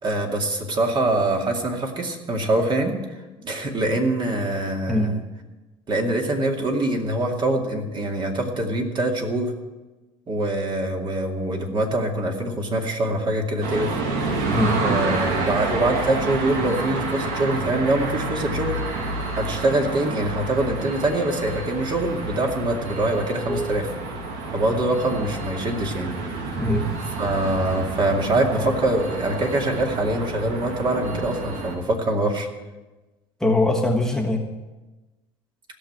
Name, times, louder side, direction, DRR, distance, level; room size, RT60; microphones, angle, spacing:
voice 1, 0.0-5.2 5.9-9.5 10.3-14.0 14.8-18.8 19.4-23.9 24.5-26.1 27.2-32.5, right 1 dB, 35° right, 2 dB, 2.4 m, -24 dB
sound 1, 13.6-31.8, right 3 dB, 80° right, 2.3 m, -29 dB
voice 2, 14.5-14.8 23.5-23.7 26.6-26.9 33.4-34.5, left 1 dB, 5° left, -1 dB, 1.3 m, -22 dB
16.0 x 6.6 x 8.9 m, 1.2 s
supercardioid pair, 115°, 13 cm